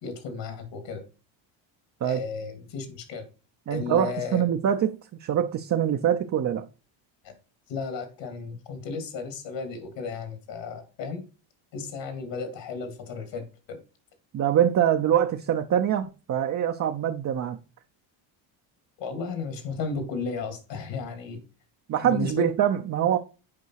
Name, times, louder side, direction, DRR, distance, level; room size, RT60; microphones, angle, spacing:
voice 1, 0.0-1.0 2.0-3.3 3.7-4.4 7.2-7.3 7.7-11.2 11.7-13.8 19.0-21.4 22.0-22.5, left 5 dB, 60° left, 2.9 m, -34 dB
voice 2, 3.7-6.7 14.3-17.6 21.9-23.2, right 9 dB, 35° right, 0.7 m, -24 dB
8.4 x 5.3 x 4.7 m
cardioid pair, 130°, 48 cm